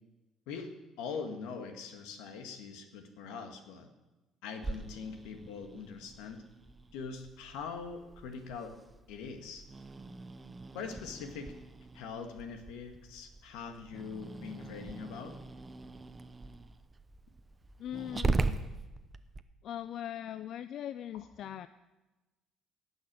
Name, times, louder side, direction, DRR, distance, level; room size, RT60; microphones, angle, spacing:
voice 1, 0.5-3.9 4.4-6.4 6.9-8.7 9.1-9.6 10.7-11.6 11.9-15.3, left 5 dB, 90° left, 7 dB, 1.8 m, -42 dB
Growling, 4.6-19.4, right 3 dB, 20° right, 0.8 m, -40 dB
voice 2, 17.8-18.6 19.6-21.7, left 11 dB, 65° left, 13 dB, 0.5 m, -40 dB
17.5 x 6.3 x 8.8 m, 1.1 s
cardioid pair, 105°, 0 cm